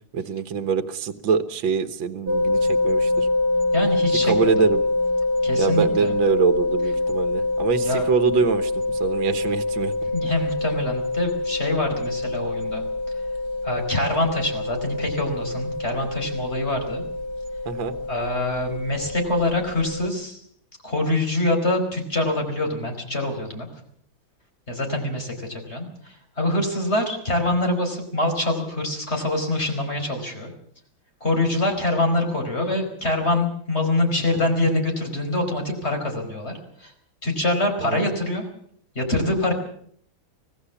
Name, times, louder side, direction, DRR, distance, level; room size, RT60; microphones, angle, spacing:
voice 1, 0.1-3.3 4.2-4.8 5.6-9.9 17.7-17.9 37.8-38.1, right 6 dB, 70° right, 9 dB, 2.0 m, -24 dB
sound 1, 2.3-20.1, left 2 dB, 45° right, 2.4 m, -25 dB
voice 2, 3.7-4.5 5.4-6.1 7.8-8.1 10.1-12.8 13.6-17.0 18.1-20.4 20.8-23.7 24.7-30.5 31.2-36.9 37.2-38.4 38.9-39.5, left 1 dB, 30° left, 4 dB, 5.0 m, -25 dB
25.0 x 18.0 x 7.1 m, 0.62 s
omnidirectional pair, 2.2 m